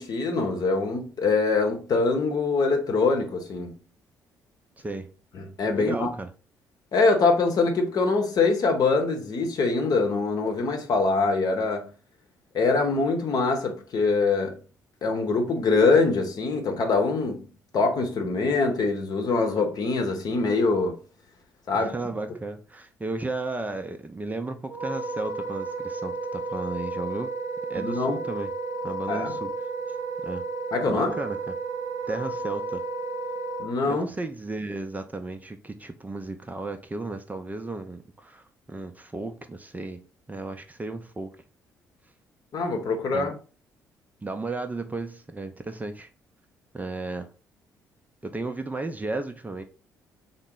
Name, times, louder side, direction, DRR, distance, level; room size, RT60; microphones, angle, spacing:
voice 1, 0.0-3.7 5.3-6.1 6.9-11.9 12.5-14.6 15.0-21.0 21.7-21.9 27.8-28.2 29.1-29.4 30.7-31.1 33.6-34.0 42.5-43.4, left 3 dB, 45° left, 0.8 m, -24 dB
voice 2, 4.8-5.1 5.8-6.3 21.7-27.3 27.7-28.5 28.8-29.5 30.2-30.4 30.9-31.6 32.1-32.8 33.9-40.0 40.3-41.4 43.1-43.3 44.2-46.1 46.7-47.3 48.2-49.6, right 3 dB, 20° right, 0.5 m, -34 dB
Wind instrument woodwind instrument, 24.7-33.7, right 3 dB, 40° right, 0.9 m, -32 dB
3.7 x 2.0 x 3.7 m
figure-of-eight pair, 45°, 9 cm